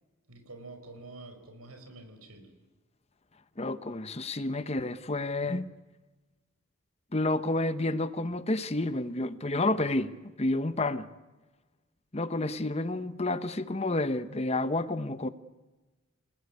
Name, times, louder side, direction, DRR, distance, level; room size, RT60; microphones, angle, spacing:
voice 1, 0.3-2.5, right 2 dB, 85° right, 5.1 m, -47 dB
voice 2, 3.6-5.7 7.1-11.1 12.1-15.3, left 2 dB, 30° left, 0.9 m, -30 dB
28.0 x 19.5 x 9.4 m
head